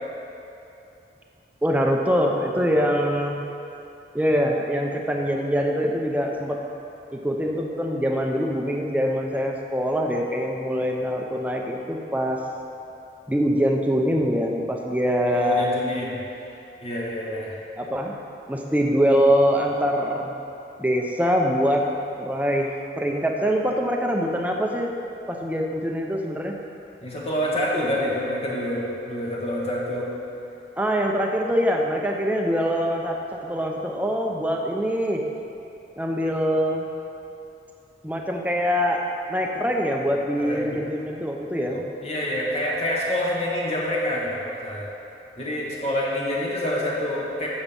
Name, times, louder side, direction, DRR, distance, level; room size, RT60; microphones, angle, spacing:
voice 1, 1.6-3.4 4.1-6.6 7.1-12.4 13.3-15.7 17.8-18.1 18.5-20.3 20.8-24.9 25.3-26.5 30.8-35.3 36.0-36.9 38.0-39.0 39.3-41.8, equal, 10° right, 1 dB, 0.6 m, -24 dB
voice 2, 15.3-16.2 16.8-17.6 27.0-30.1 40.4-40.8 41.7-44.9 45.4-47.5, left 1 dB, 35° left, -4 dB, 1.2 m, -27 dB
7.1 x 7.1 x 5.4 m, 2.8 s
head